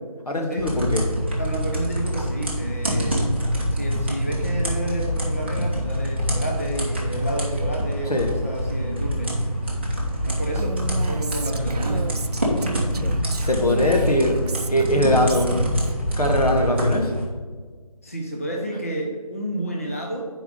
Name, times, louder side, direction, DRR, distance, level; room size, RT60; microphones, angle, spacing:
voice 1, 0.3-1.0 8.1-8.3 13.4-14.4 14.7-15.5 16.2-17.1, left 1 dB, 80° left, 2 dB, 1.3 m, -21 dB
sound 1, 0.6-17.2, equal, 20° right, 0.7 m, -25 dB
voice 2, 1.4-3.2 3.7-9.4 10.2-12.1 18.0-20.3, right 1 dB, 25° left, -1 dB, 0.4 m, -30 dB
Female speech woman speaking, 10.6-15.9, right 4 dB, 85° right, 0.4 m, -33 dB
6.5 x 4.6 x 3.8 m, 1.5 s
figure-of-eight pair, 165°, 19 cm